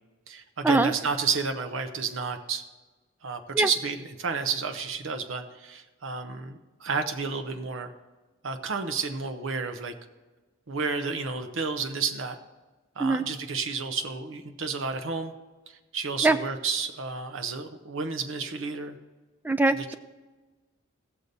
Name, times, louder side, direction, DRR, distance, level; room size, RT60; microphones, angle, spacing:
voice 1, 0.3-2.6 3.2-7.9 8.4-9.9 10.7-12.4 13.0-15.3 15.9-19.0 19.6-19.9, right 5 dB, 65° right, 6 dB, 0.7 m, -31 dB
voice 2, 19.5-19.9, right 2 dB, 10° right, 10 dB, 0.3 m, -22 dB
16.5 x 6.7 x 4.0 m, 1.2 s
head